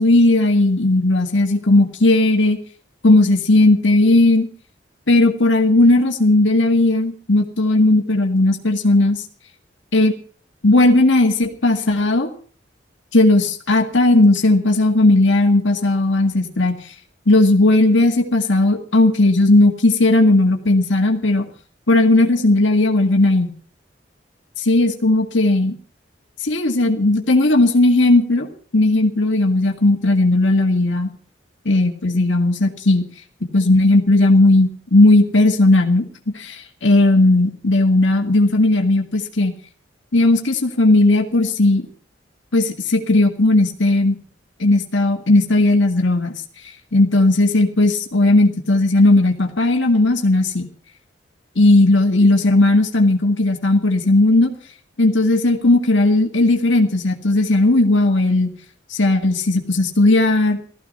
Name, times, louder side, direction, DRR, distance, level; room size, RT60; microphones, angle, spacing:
voice 1, 0.0-2.6 3.0-4.5 5.1-9.2 9.9-10.2 10.6-12.3 13.1-16.7 17.3-21.5 21.9-23.5 24.7-25.8 26.4-31.1 31.7-33.1 33.5-36.0 36.3-39.5 40.1-41.9 42.5-44.2 44.6-46.3 46.9-50.7 51.6-54.5 55.0-58.5 58.9-60.6, left 2 dB, 90° left, 3 dB, 2.0 m, -16 dB
16.0 x 14.0 x 5.5 m, 0.43 s
head